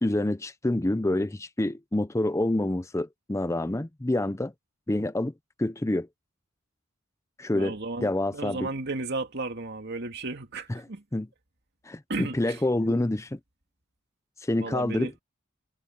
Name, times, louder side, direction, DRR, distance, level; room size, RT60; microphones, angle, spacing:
voice 1, 0.0-4.5 4.9-5.3 5.6-6.1 7.4-8.7 10.7-10.8 11.1-11.3 11.9-13.4 14.4-15.2, left 1 dB, 15° left, 0.5 m, -27 dB
voice 2, 7.5-11.0 12.1-13.0 14.6-15.1, right 2 dB, 55° right, 2.3 m, -34 dB
head